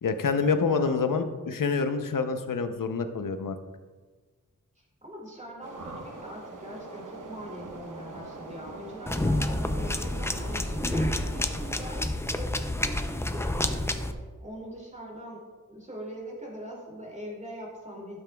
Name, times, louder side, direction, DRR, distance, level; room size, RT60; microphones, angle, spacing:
voice 1, 0.0-3.6, left 5 dB, 85° left, 8 dB, 0.7 m, -27 dB
voice 2, 0.7-1.2 4.8-12.0 12.3-15.4 15.7-18.2, equal, 25° right, -2 dB, 2.7 m, -42 dB
sound 1, 5.6-12.0, right 3 dB, 75° right, 0.9 m, -43 dB
sound 2, 9.1-14.1, left 1 dB, 10° left, 0.5 m, -29 dB
12.5 x 6.9 x 2.3 m, 1.4 s
wide cardioid pair, 75°, 32 cm